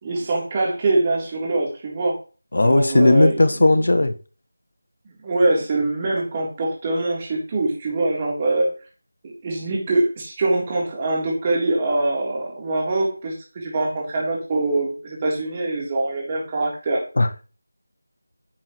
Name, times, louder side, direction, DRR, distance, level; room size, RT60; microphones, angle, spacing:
voice 1, 0.0-2.2 2.6-3.4 3.6-3.7 5.2-8.7 9.2-17.0, right 2 dB, 20° right, -2 dB, 3.6 m, -23 dB
voice 2, 2.5-4.1 17.2-17.4, left 2 dB, 55° left, 10 dB, 1.3 m, -16 dB
10.5 x 7.1 x 3.2 m, 0.34 s
figure-of-eight pair, 165°, 0 cm